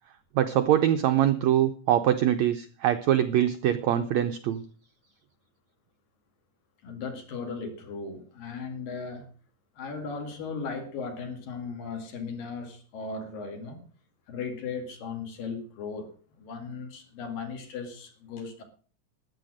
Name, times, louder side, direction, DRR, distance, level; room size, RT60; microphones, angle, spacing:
voice 1, 0.3-4.6, right 11 dB, 80° right, 8 dB, 1.6 m, -23 dB
voice 2, 6.8-9.3 9.8-13.8 14.3-18.6, left 5 dB, 70° left, 5 dB, 4.0 m, -37 dB
13.5 x 9.8 x 6.4 m, 0.42 s
omnidirectional pair, 4.1 m